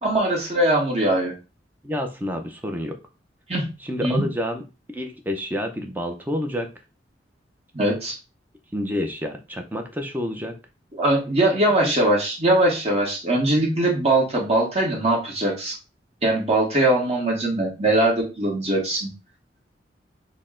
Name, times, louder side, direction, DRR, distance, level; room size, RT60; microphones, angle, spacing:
voice 1, 0.0-1.3 3.5-3.7 4.0-4.2 7.7-8.1 11.0-15.7 16.2-19.1, right 1 dB, 35° right, -2 dB, 1.4 m, -21 dB
voice 2, 1.8-2.9 3.8-4.6 4.9-6.7 8.7-10.5 11.8-11.9, equal, 10° right, 4 dB, 0.6 m, -28 dB
6.4 x 2.1 x 3.7 m, 0.30 s
head